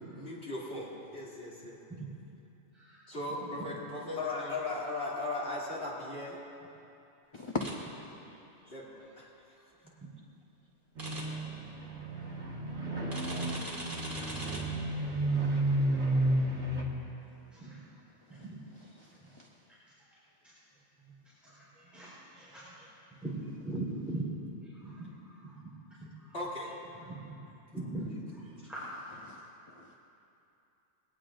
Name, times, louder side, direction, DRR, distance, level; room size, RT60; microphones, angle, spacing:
voice 1, 0.1-1.8 3.1-6.4 8.7-9.6 26.3-26.7, left 2 dB, 60° left, -7 dB, 3.0 m, -37 dB
voice 2, 2.7-3.1 8.2-8.3 17.5-17.8 18.3-18.6 20.4-20.5 21.0-21.1 21.4-22.9 23.2-25.7 26.0-26.3 26.9-27.3 27.7-29.2, right 2 dB, ahead, -11 dB, 4.1 m, -41 dB
voice 3, 7.3-7.7 8.6-8.7 18.3-18.4 18.9-19.5 29.2-29.4 29.7-29.9, left 3 dB, 30° left, 1 dB, 0.7 m, -39 dB
sound 1, 7.6-7.7 11.0-11.2 13.1-14.6, right 1 dB, 45° right, 2.7 m, -41 dB
sound 2, 10.9-16.8, right 1 dB, 70° right, 2.2 m, -32 dB
22.0 x 18.0 x 2.6 m, 2.8 s
omnidirectional pair, 1.2 m